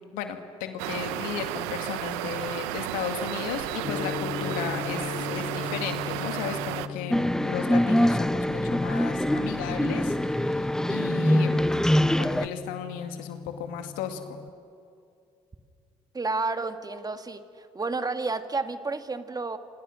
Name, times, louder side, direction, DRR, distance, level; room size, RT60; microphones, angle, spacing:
voice 1, 0.0-11.9 12.2-14.4, left 8 dB, 80° left, 7 dB, 2.2 m, -35 dB
sound 1, 0.8-6.9, right 14 dB, 85° right, 0.8 m, -33 dB
Gong, 3.8-14.5, left 6 dB, 40° left, 0.8 m, -39 dB
sound 2, 7.1-12.5, left 1 dB, 5° left, 1.0 m, -24 dB
voice 2, 16.1-19.6, right 3 dB, 30° right, 8 dB, 2.0 m, -31 dB
28.5 x 26.5 x 6.4 m, 2.5 s
hypercardioid pair, 55°, 14 cm